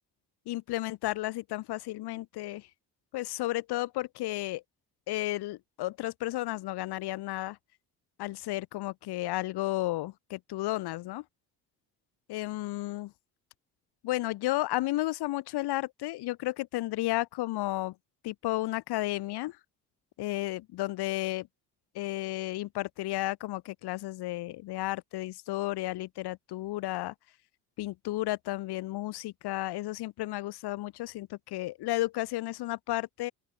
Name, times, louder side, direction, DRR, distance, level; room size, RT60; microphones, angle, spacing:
voice 1, 0.5-2.7 3.1-4.6 5.1-7.6 8.2-11.2 12.3-13.1 14.0-17.9 18.2-19.6 20.2-21.5 21.9-27.1 27.8-33.3, left 17 dB, 85° left, 2.8 m, -33 dB
open air
cardioid pair, 90°, 38 cm